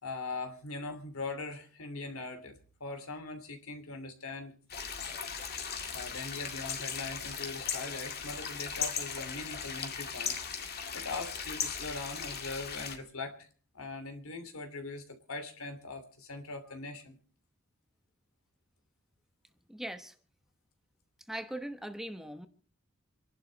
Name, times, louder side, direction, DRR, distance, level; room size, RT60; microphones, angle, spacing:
voice 1, 0.0-5.0 5.9-10.4 10.7-13.5 13.7-17.2, left 3 dB, 90° left, 6 dB, 2.9 m, -41 dB
sound 1, 4.7-13.0, left 6 dB, 50° left, 2.1 m, -38 dB
voice 2, 19.7-20.1 21.3-22.5, right 1 dB, ahead, 8 dB, 1.0 m, -40 dB
27.5 x 11.5 x 4.0 m, 0.42 s
head